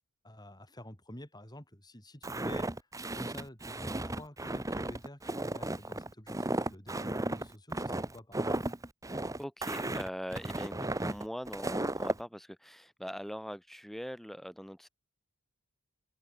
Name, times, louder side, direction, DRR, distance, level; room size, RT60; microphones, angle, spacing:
voice 1, 0.2-2.9 3.1-8.6, left 1 dB, 20° left, 6.4 m, -49 dB
Walk footsteps, 2.2-12.2, right 2 dB, 15° right, 1.2 m, -35 dB
voice 2, 9.4-14.9, equal, ahead, 4.4 m, -42 dB
open air
head